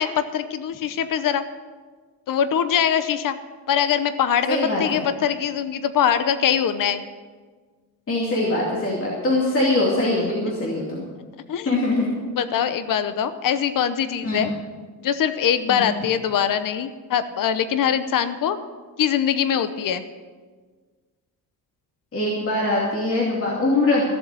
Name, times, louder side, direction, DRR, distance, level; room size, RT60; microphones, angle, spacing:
voice 1, 0.0-1.4 2.3-3.3 3.7-7.1 11.5-11.7 12.3-14.5 15.0-18.6 19.0-20.0, left 8 dB, 55° left, 11 dB, 0.8 m, -22 dB
voice 2, 4.5-5.0 8.1-11.1 11.7-12.1 14.2-14.5 15.7-15.9 22.1-24.0, left 2 dB, 35° left, -4 dB, 2.6 m, -22 dB
15.5 x 7.5 x 8.4 m, 1.5 s
cardioid pair, 150°, 39 cm